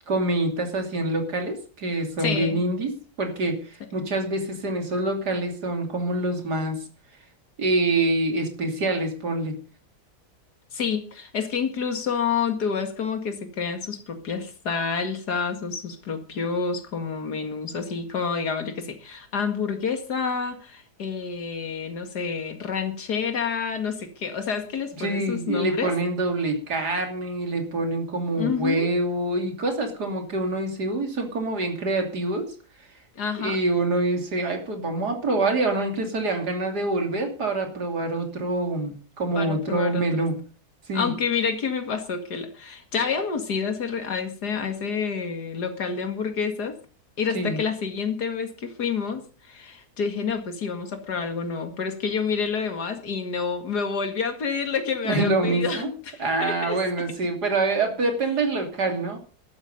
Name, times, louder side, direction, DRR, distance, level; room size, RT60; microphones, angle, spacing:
voice 1, 0.1-2.9 3.2-6.8 7.6-9.6 24.9-32.5 33.4-40.4 40.9-41.1 47.3-47.6 55.0-55.9 56.2-59.2, right 2 dB, 90° right, 4 dB, 3.5 m, -26 dB
voice 2, 2.2-2.6 10.7-25.9 28.4-28.9 33.2-33.6 39.3-40.3 40.9-46.8 47.2-56.8, left 5 dB, 85° left, 7 dB, 2.6 m, -28 dB
13.5 x 12.5 x 5.3 m, 0.38 s
omnidirectional pair, 1.7 m